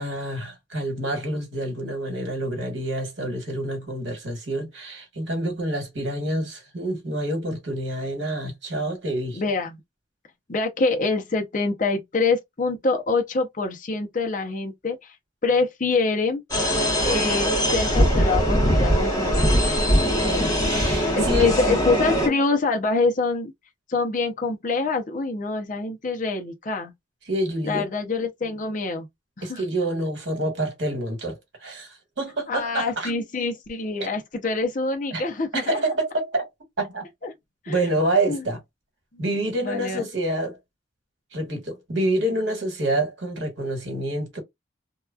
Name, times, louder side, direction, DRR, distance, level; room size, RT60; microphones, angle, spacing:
voice 1, 0.0-9.4 20.2-21.6 27.2-27.8 29.4-33.1 35.1-35.3 35.5-36.5 36.8-37.0 37.7-38.6 39.2-40.6 41.3-44.4, right 1 dB, 70° right, 1.3 m, -27 dB
voice 2, 9.3-9.8 10.5-15.1 15.4-16.4 17.0-19.6 20.8-23.5 23.9-26.9 27.6-29.1 29.4-29.6 32.5-35.8 37.2-37.3 37.7-37.9 38.3-38.4 39.1-39.2 39.6-40.0, left 3 dB, 40° left, 0.7 m, -25 dB
sound 1, 16.5-22.3, equal, 20° left, 1.1 m, -21 dB
2.9 x 2.3 x 2.3 m
head